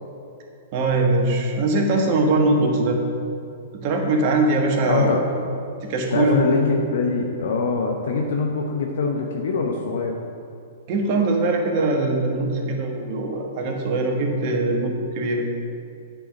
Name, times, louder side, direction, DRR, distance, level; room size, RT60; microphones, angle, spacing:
voice 1, 0.7-3.0 3.8-5.1 5.9-6.4 10.9-15.5, right 2 dB, 50° right, 1 dB, 1.4 m, -21 dB
voice 2, 4.9-5.2 6.1-10.2, left 4 dB, 70° left, 1 dB, 0.8 m, -23 dB
8.9 x 4.7 x 5.3 m, 2.5 s
hypercardioid pair, 115°, 0 cm